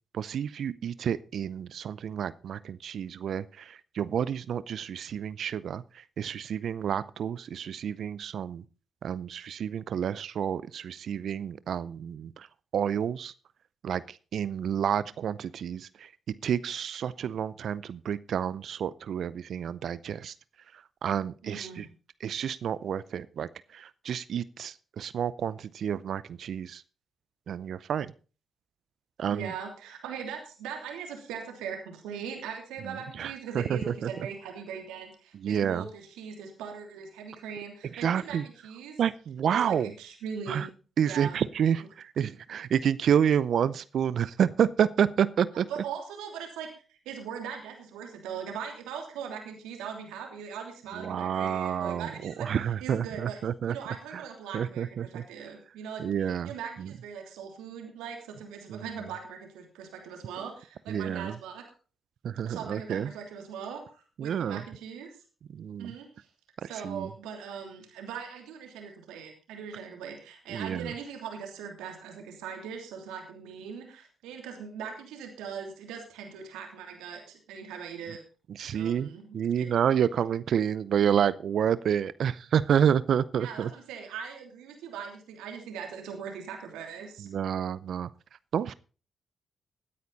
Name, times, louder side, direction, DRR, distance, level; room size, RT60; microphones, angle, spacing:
voice 1, 0.1-8.6 9.0-12.5 12.7-13.3 13.8-16.1 16.4-20.3 20.7-21.9 22.2-26.8 27.5-28.1 29.2-29.5 32.9-34.1 35.4-35.9 37.9-38.4 39.0-39.9 40.5-40.7 41.0-45.7 50.9-53.8 54.1-54.2 54.5-55.2 56.0-56.5 56.8-56.9 58.7-58.8 60.9-61.4 62.2-63.1 64.2-64.6 65.5-65.9 66.6-67.1 70.5-70.9 78.5-83.7 87.2-88.1 88.5-88.7, right 8 dB, 70° right, 18 dB, 0.5 m, -29 dB
voice 2, 21.4-21.8 29.3-38.9 39.5-40.7 41.1-41.4 45.7-53.4 53.6-61.6 62.5-65.1 65.8-66.3 66.6-78.2 78.7-79.7 83.4-87.3, right 7 dB, 85° right, 2 dB, 3.0 m, -40 dB
17.0 x 9.5 x 4.1 m, 0.37 s
hypercardioid pair, 40°, 0 cm